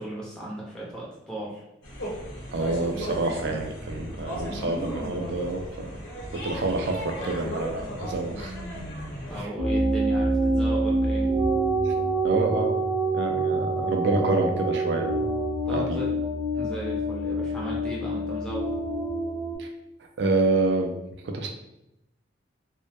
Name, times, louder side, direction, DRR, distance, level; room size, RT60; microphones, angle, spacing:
voice 1, 0.0-1.6 9.3-11.3 15.7-16.1 16.5-18.7, right 1 dB, 5° left, -5 dB, 0.4 m, -36 dB
sound 1, 1.8-9.4, equal, 70° left, 0.7 m, -36 dB
voice 2, 2.5-6.0 6.4-8.5 11.9-12.0 12.2-12.8 13.1-15.3 15.7-16.0 19.6-19.7 20.2-20.9 21.2-21.5, right 2 dB, 60° right, 3 dB, 0.3 m, -27 dB
sound 2, 9.6-19.6, right 2 dB, 30° right, 0.7 m, -26 dB
2.1 x 2.0 x 2.8 m, 0.88 s
head